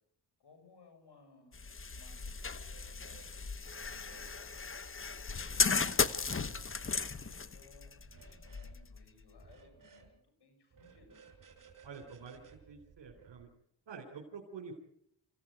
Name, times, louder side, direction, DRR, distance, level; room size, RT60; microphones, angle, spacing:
voice 1, 0.4-2.6 2.9-3.3 3.7-5.9 6.5-11.2, left 4 dB, 65° left, 5 dB, 7.3 m, -63 dB
sound 1, 1.5-9.4, left 5 dB, 30° left, 1.1 m, -36 dB
sound 2, 2.6-3.3 3.6-4.3 5.3-6.0 6.3-7.0 8.0-8.8 9.4-10.1 10.7-13.4, right 5 dB, 45° right, 5.2 m, -59 dB
voice 2, 11.8-12.4 12.7-13.5 13.9-14.7, right 5 dB, 70° right, 2 dB, 4.1 m, -48 dB
26.5 x 16.0 x 9.0 m, 0.76 s
cardioid pair, 95°, 43 cm